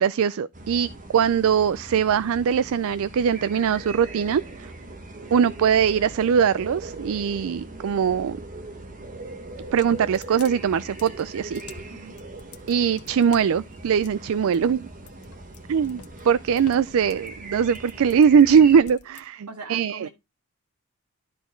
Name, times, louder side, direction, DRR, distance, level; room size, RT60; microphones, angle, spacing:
voice 1, 0.0-4.7 5.3-8.4 9.7-11.6 12.7-14.9 15.7-20.1, right 7 dB, 65° right, 0.4 m, -21 dB
sound 1, 0.5-18.8, right 2 dB, 40° right, 1.5 m, -40 dB
sound 2, 9.5-19.3, left 6 dB, 90° left, 1.1 m, -48 dB
voice 2, 19.5-20.1, right 3 dB, 80° right, 1.8 m, -40 dB
12.0 x 4.3 x 4.4 m
head